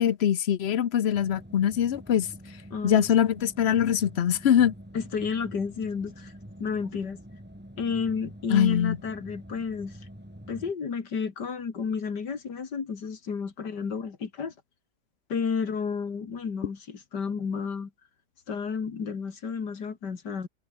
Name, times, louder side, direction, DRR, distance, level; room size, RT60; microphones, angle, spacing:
voice 1, 0.0-2.3 2.8-4.7 8.5-9.0, left 9 dB, 50° left, 0.8 m, -23 dB
sound 1, 1.1-10.7, equal, 5° right, 5.6 m, -46 dB
voice 2, 2.7-3.1 4.9-6.3 6.6-7.2 7.8-9.9 10.5-14.5 15.3-17.9 18.5-20.5, left 5 dB, 85° left, 2.9 m, -31 dB
omnidirectional pair, 1.8 m